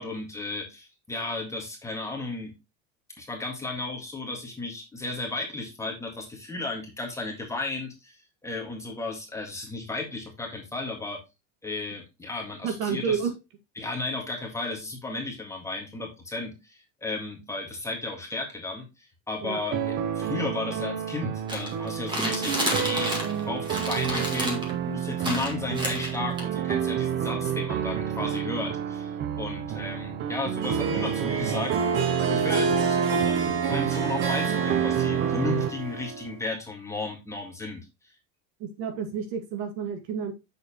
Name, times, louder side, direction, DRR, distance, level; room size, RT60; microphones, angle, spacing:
voice 1, 0.0-2.5 3.2-8.2 8.4-11.2 11.6-13.2 13.7-37.8, left 3 dB, 10° left, 1.8 m, -34 dB
voice 2, 12.6-13.3 19.4-19.6 38.6-40.3, right 6 dB, 60° right, 2.1 m, -30 dB
sound 1, 19.7-35.7, right 9 dB, 35° right, 0.7 m, -29 dB
sound 2, 21.5-23.4 23.6-24.7 25.2-26.4, equal, 15° right, 2.0 m, -30 dB
Harp, 30.6-36.4, right 4 dB, 80° right, 2.6 m, -29 dB
7.8 x 6.6 x 3.0 m
cardioid pair, 175°, 34 cm